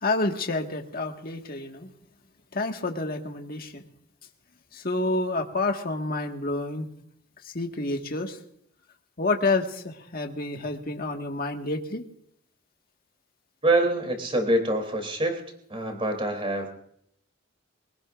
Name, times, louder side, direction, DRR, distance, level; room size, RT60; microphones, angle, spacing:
voice 1, 0.0-1.9 2.5-3.9 4.7-6.9 7.4-8.4 9.2-12.0, left 2 dB, 45° left, 3 dB, 1.8 m, -29 dB
voice 2, 13.6-15.4 15.7-16.7, right 1 dB, 25° right, 4 dB, 3.3 m, -25 dB
25.0 x 18.5 x 2.6 m, 0.70 s
head